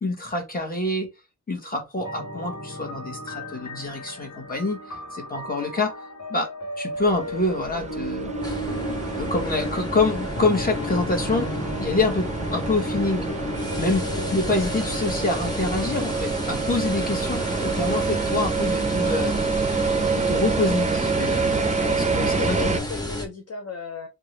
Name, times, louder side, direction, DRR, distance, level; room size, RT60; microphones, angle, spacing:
voice 1, 0.0-1.1 1.5-4.8 5.1-6.0 6.3-6.5 6.8-8.3 9.1-13.3 13.8-14.0 14.3-19.8 20.1-21.5 22.1-22.8, left 2 dB, 30° left, 1.3 m, -26 dB
sound 1, 2.0-20.9, equal, 75° left, 1.2 m, -36 dB
sound 2, 7.0-22.8, right 4 dB, 25° right, 0.5 m, -28 dB
sound 3, 8.4-23.3, left 1 dB, 15° left, 1.0 m, -32 dB
voice 2, 21.6-24.1, left 5 dB, 60° left, 0.6 m, -35 dB
3.6 x 2.4 x 3.1 m
wide cardioid pair, 80°, 29 cm